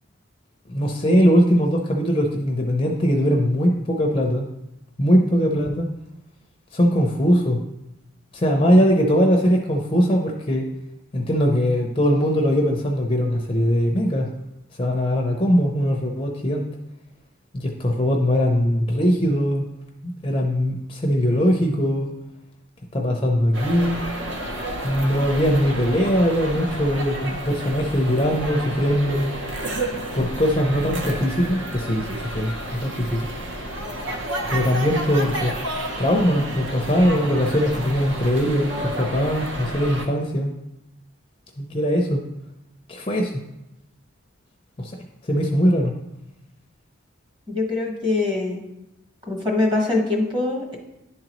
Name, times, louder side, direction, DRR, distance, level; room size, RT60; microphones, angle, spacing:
voice 1, 0.7-4.5 5.0-5.9 6.7-7.6 8.3-10.7 11.1-14.3 14.8-16.6 17.5-19.6 20.2-22.1 22.9-24.0 24.8-29.3 30.1-33.3 34.5-35.5 36.0-40.5 41.6-42.2 42.9-43.3 44.8-44.9 45.2-45.9, equal, 25° left, 1 dB, 0.5 m, -21 dB
sound 1, 23.5-40.1, right 1 dB, 65° right, 0.8 m, -31 dB
voice 2, 47.5-48.6 49.3-50.8, left 2 dB, 25° right, 0 dB, 1.2 m, -23 dB
11.0 x 3.9 x 3.0 m, 0.87 s
head